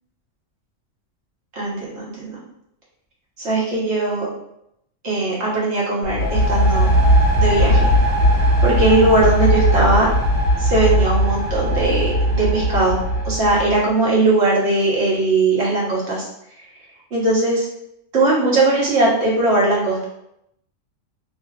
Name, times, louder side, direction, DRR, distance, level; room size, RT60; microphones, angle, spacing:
voice 1, 1.5-2.4 3.4-4.3 5.0-6.9 7.4-7.9 8.6-10.1 10.6-16.3 17.1-17.7 18.1-20.0, right 2 dB, 55° right, -5 dB, 1.5 m, -19 dB
sound 1, 6.0-13.8, equal, 10° left, 1.2 m, -18 dB
3.9 x 2.9 x 3.1 m, 0.78 s
omnidirectional pair, 1.4 m